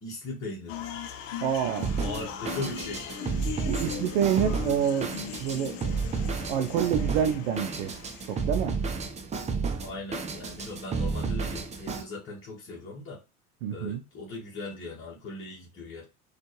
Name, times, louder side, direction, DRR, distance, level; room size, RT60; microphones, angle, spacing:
voice 1, 0.0-0.7 2.0-3.0 9.8-13.2 13.7-16.0, left 2 dB, 25° left, 1.3 m, -38 dB
sound 1, 0.7-8.9, left 8 dB, 60° left, 0.7 m, -39 dB
voice 2, 1.4-1.9 3.7-5.9 6.5-7.9 8.2-8.8 13.6-14.0, right 8 dB, 55° right, 0.6 m, -27 dB
Drum kit, 1.8-12.0, right 4 dB, 15° right, 0.5 m, -32 dB
4.3 x 2.5 x 3.1 m
figure-of-eight pair, 75°, 45 cm